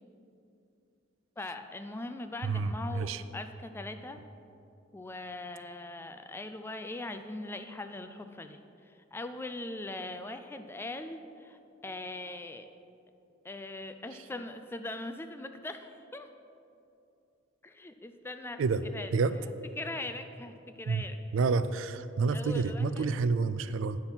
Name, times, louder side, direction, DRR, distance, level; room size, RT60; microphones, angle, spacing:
voice 1, 1.4-4.2 4.9-12.7 13.4-16.3 17.6-18.6 18.9-19.1 19.8-21.2 22.3-23.1, left 2 dB, 10° left, 8 dB, 0.3 m, -41 dB
voice 2, 2.4-3.2 18.6-18.8 19.1-19.4 20.9-21.0 21.3-24.0, right 4 dB, 75° right, 13 dB, 0.4 m, -29 dB
8.7 x 6.0 x 5.7 m, 2.7 s
head